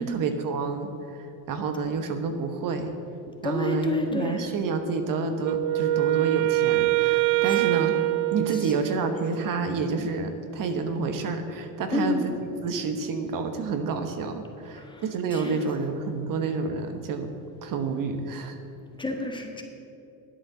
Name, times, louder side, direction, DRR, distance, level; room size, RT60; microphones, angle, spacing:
voice 1, 0.0-2.9 3.4-8.0 8.3-12.3 12.6-17.3 17.6-18.6, right 4 dB, 50° right, 7 dB, 1.2 m, -29 dB
voice 2, 3.4-4.5 7.5-7.7 8.6-8.7 11.9-12.3 14.7-15.0 15.3-15.6 19.0-19.6, left 1 dB, 10° left, 2 dB, 1.5 m, -29 dB
Wind instrument woodwind instrument, 5.4-9.3, right 18 dB, 80° right, 0.5 m, -24 dB
11.0 x 8.2 x 6.9 m, 2.8 s
supercardioid pair, 110°, 43 cm